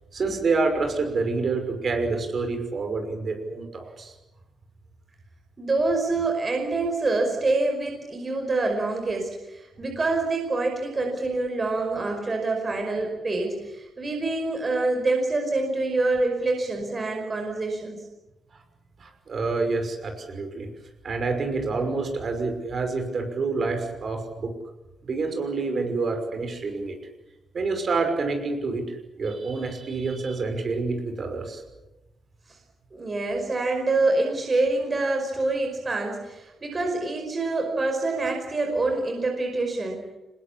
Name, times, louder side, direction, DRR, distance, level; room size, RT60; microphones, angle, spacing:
voice 1, 0.1-4.1 19.0-20.7 21.0-24.5 25.0-27.0 27.5-28.9 29.2-31.6, right 3 dB, 40° right, 5 dB, 5.8 m, -27 dB
voice 2, 5.6-18.0 32.9-40.0, right 2 dB, 25° right, 3 dB, 5.3 m, -26 dB
26.0 x 21.0 x 8.5 m, 0.98 s
cardioid pair, 130°, 0 cm